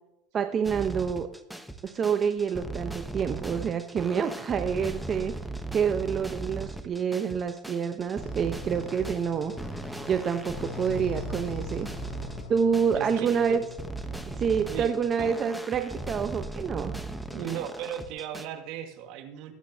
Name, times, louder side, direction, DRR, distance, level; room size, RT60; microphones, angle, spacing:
voice 1, 0.3-1.3 1.8-5.3 5.7-9.5 10.1-11.9 12.5-13.6 14.3-16.9, right 7 dB, 35° right, 7 dB, 1.0 m, -27 dB
sound 1, 0.6-18.5, right 2 dB, ahead, 1.1 m, -38 dB
sound 2, 8.2-15.1, left 8 dB, 75° left, 2.0 m, -44 dB
voice 2, 13.0-13.6 14.6-15.3 17.3-19.5, right 10 dB, 60° right, 6 dB, 2.0 m, -37 dB
21.5 x 8.4 x 2.9 m, 0.84 s
supercardioid pair, 110°, 0 cm